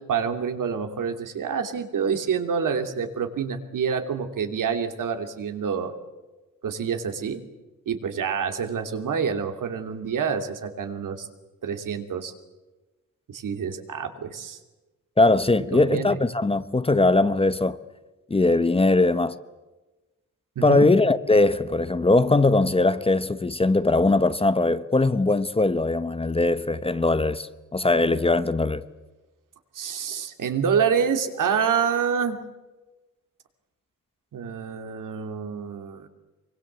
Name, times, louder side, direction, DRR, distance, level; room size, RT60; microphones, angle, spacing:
voice 1, 0.0-5.9 6.6-7.4 7.9-11.3 11.6-12.3 13.3-14.6 15.7-16.2 20.6-20.9 29.7-32.4 34.3-36.1, right 6 dB, 75° right, 2.9 m, -27 dB
voice 2, 15.2-17.8 18.3-19.3 20.6-28.8, left 2 dB, 15° left, 0.9 m, -20 dB
25.0 x 24.0 x 8.1 m
wide cardioid pair, 140°, 32 cm